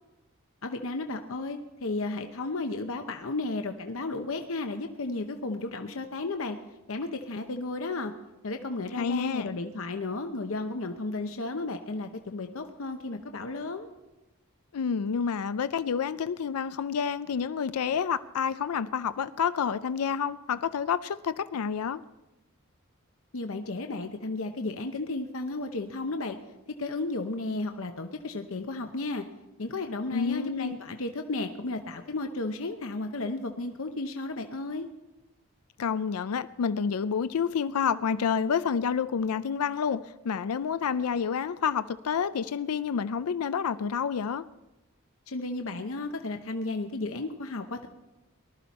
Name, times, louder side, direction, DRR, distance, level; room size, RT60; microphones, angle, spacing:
voice 1, 0.6-6.6 6.9-8.1 8.4-13.9 23.3-26.4 26.7-29.2 29.6-34.9 45.3-47.9, left 2 dB, 70° left, 5 dB, 0.8 m, -33 dB
voice 2, 9.0-9.6 14.7-22.0 30.1-30.8 35.8-44.4, left 6 dB, 90° left, 14 dB, 0.4 m, -29 dB
19.5 x 12.5 x 4.2 m, 1.0 s
head